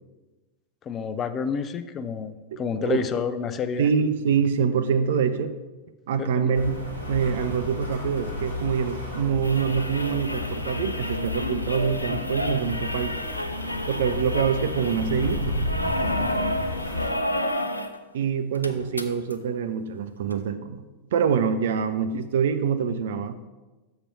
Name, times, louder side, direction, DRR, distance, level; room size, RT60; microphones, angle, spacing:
voice 1, 0.9-3.9 6.2-6.6, left 6 dB, 25° left, 11 dB, 0.5 m, -29 dB
voice 2, 2.5-3.0 3.8-5.5 6.1-6.8 7.1-13.2 13.9-15.5 18.1-20.8 21.1-23.4, right 7 dB, 60° right, 10 dB, 0.5 m, -25 dB
Rain, 6.5-17.1, left 2 dB, 90° right, 1.3 m, -33 dB
sound 1, 9.4-18.0 18.3-18.4 18.5-19.3 20.3-20.4, equal, 85° left, 0.5 m, -30 dB
6.8 x 5.7 x 5.7 m, 1.2 s
figure-of-eight pair, 90°, 0 cm